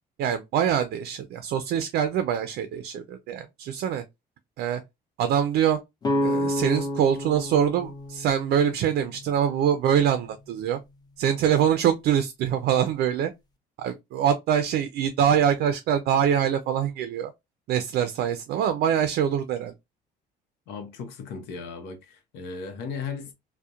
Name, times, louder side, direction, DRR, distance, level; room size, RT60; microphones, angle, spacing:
voice 1, 0.2-4.0 4.6-4.8 5.2-5.8 6.2-10.8 11.2-13.3 13.8-17.3 17.7-19.7, right 9 dB, 70° right, 0.4 m, -24 dB
sound 1, 6.0-9.8, left 1 dB, 25° left, 0.6 m, -30 dB
voice 2, 20.7-23.3, left 5 dB, 85° left, 0.7 m, -36 dB
2.8 x 2.1 x 2.3 m
cardioid pair, 110°, 17 cm